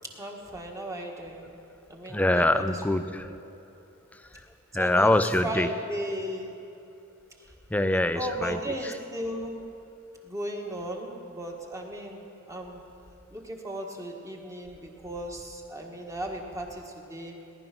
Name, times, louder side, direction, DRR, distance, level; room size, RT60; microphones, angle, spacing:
voice 1, 0.1-1.6 1.9-3.4 4.7-5.1 5.4-6.5 7.4-7.5 8.1-9.7 10.2-12.8 13.3-17.4, right 1 dB, 15° right, 1 dB, 1.5 m, -36 dB
voice 2, 2.1-3.3 4.1-4.5 4.7-5.7 7.7-8.6, left 1 dB, 5° left, 10 dB, 0.4 m, -24 dB
18.5 x 11.0 x 6.0 m, 2.7 s
head